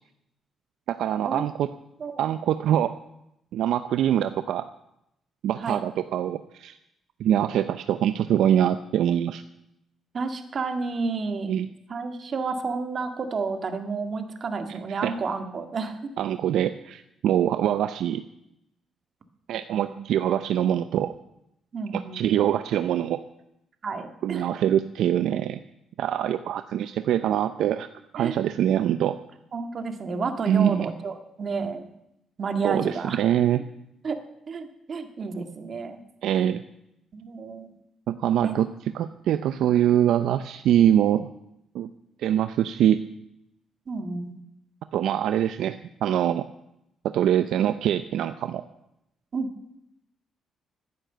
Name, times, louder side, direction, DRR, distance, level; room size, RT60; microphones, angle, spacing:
voice 1, 0.9-1.7 2.2-3.0 3.5-4.6 5.4-6.8 7.2-9.4 11.5-11.7 14.7-15.1 16.2-18.2 19.5-21.1 21.9-23.2 24.2-25.6 26.0-27.9 28.1-29.2 30.5-30.9 32.6-33.6 36.2-36.6 38.1-38.7 38.9-41.3 41.7-41.9 42.2-43.0 44.9-46.5 47.0-48.6, right 10 dB, 80° right, 11 dB, 0.5 m, -24 dB
voice 2, 10.1-11.6 11.9-16.1 19.8-20.0 21.7-22.4 23.8-24.5 28.2-28.4 29.5-31.9 32.4-33.2 34.0-34.2 34.5-36.0 37.1-37.7 38.4-38.5 43.9-44.4 49.3-49.5, right 4 dB, 45° right, 7 dB, 1.9 m, -30 dB
15.0 x 9.8 x 6.7 m, 0.81 s
cardioid pair, 90°, 0 cm